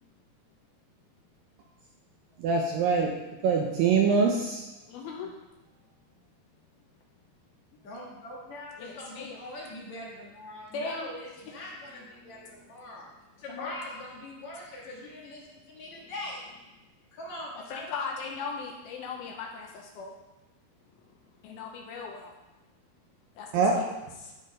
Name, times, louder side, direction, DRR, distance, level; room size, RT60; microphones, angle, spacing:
voice 1, 2.4-3.1 3.4-4.7 23.5-23.8, right 5 dB, 75° right, 0 dB, 2.2 m, -24 dB
voice 2, 4.9-5.3 8.8-9.4 10.7-11.1 12.2-12.6 13.6-13.7 17.7-20.1 21.4-22.3 23.4-23.9 24.2-24.3, left 5 dB, 80° left, 1 dB, 2.4 m, -38 dB
voice 3, 7.7-13.1 13.4-16.4 17.1-17.9, left 1 dB, 55° left, -4 dB, 2.4 m, -42 dB
11.5 x 4.4 x 5.2 m, 1.0 s
omnidirectional pair, 4.8 m